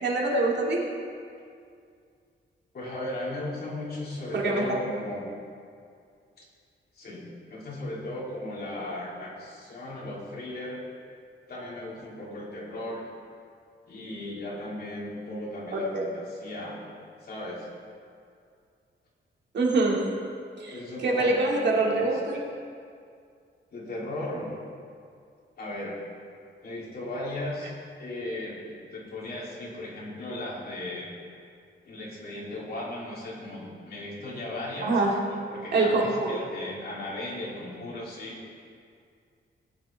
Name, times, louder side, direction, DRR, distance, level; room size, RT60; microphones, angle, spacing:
voice 1, 0.0-0.8 4.3-4.8 15.7-16.1 19.5-20.1 20.6-22.4 34.8-35.2 35.7-36.4, right 2 dB, 60° right, -3 dB, 2.2 m, -25 dB
voice 2, 2.7-5.2 6.4-6.5 6.9-7.2 7.5-10.8 11.5-13.1 13.9-16.8 17.2-17.7 20.7-22.1 23.7-24.5 25.6-26.0 26.6-27.7 28.0-31.1 31.8-35.0 35.3-38.4, left 1 dB, 50° left, -6 dB, 3.1 m, -36 dB
18.5 x 9.5 x 3.5 m, 2.3 s
wide cardioid pair, 160°, 20 cm